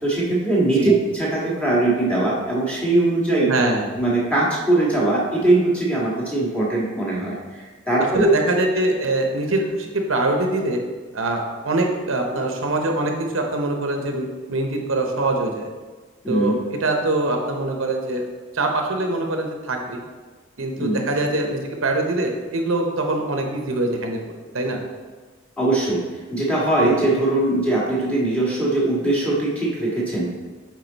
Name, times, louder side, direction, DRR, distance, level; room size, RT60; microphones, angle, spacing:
voice 1, 0.0-3.5 4.0-8.3 16.2-16.6 20.8-21.0 25.6-30.3, right 2 dB, 5° left, -6 dB, 1.6 m, -21 dB
voice 2, 3.5-3.8 8.1-10.8 11.1-15.7 16.3-18.3 18.5-20.0 20.6-24.2 24.5-24.8 26.8-26.9, right 2 dB, 70° right, 3 dB, 0.8 m, -23 dB
7.7 x 4.9 x 4.0 m, 1.4 s
head